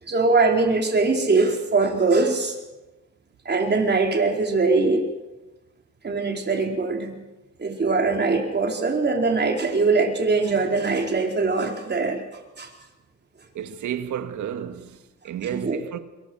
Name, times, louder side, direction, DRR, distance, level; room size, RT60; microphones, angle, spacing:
voice 1, 0.1-2.6 3.4-5.1 6.0-7.1 7.6-12.2 12.6-12.7 15.5-15.8, right 3 dB, 35° right, 4.5 m, -22 dB
voice 2, 13.5-16.0, right 9 dB, 75° right, 2.0 m, -32 dB
26.0 x 23.0 x 6.4 m
cardioid pair, 90°, 30 cm